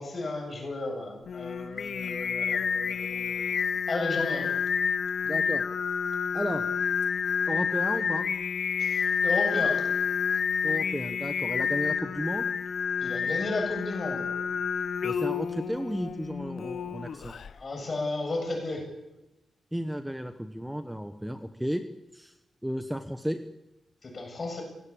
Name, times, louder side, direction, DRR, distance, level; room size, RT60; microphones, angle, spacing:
voice 1, 0.0-4.5 8.8-9.8 13.0-14.3 17.5-18.8 24.0-24.6, left 2 dB, 35° left, 3 dB, 7.4 m, -34 dB
Singing, 1.3-17.5, left 6 dB, 60° left, 0.9 m, -29 dB
voice 2, 5.2-5.6 6.3-6.6 7.5-8.3 10.6-12.5 15.0-17.3 19.7-21.8 22.1-22.3 22.6-23.4, equal, 5° right, 8 dB, 1.1 m, -33 dB
28.0 x 17.5 x 8.6 m, 0.94 s
wide cardioid pair, 160°, 0 cm